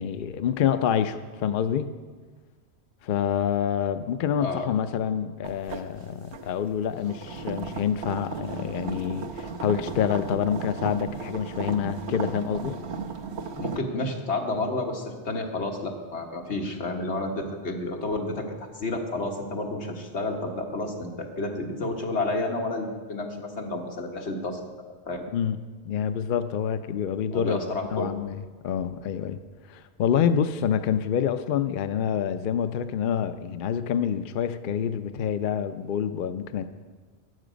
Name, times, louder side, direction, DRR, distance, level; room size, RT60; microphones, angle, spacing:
voice 1, 0.0-1.9 3.0-12.8 25.3-27.6 27.9-29.4 29.7-36.7, left 8 dB, 60° left, 10 dB, 0.7 m, -27 dB
sound 1, 5.4-13.8, right 5 dB, 80° right, 1.2 m, -35 dB
voice 2, 13.6-18.4 18.7-24.6 25.1-25.2 27.3-28.1, left 2 dB, 90° left, 2 dB, 1.7 m, -30 dB
14.0 x 10.0 x 5.1 m, 1.4 s
omnidirectional pair, 1.1 m